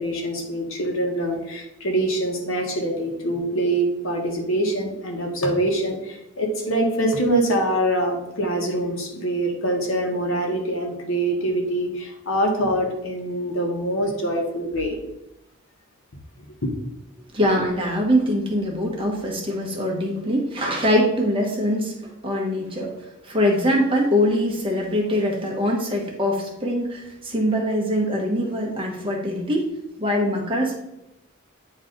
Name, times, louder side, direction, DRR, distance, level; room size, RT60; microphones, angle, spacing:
voice 1, 0.0-15.0 16.6-16.7, right 1 dB, 75° left, 2 dB, 1.3 m, -24 dB
voice 2, 17.3-22.9 23.2-29.7 30.0-30.7, equal, 25° right, -1 dB, 1.2 m, -23 dB
9.3 x 3.2 x 3.9 m, 0.89 s
head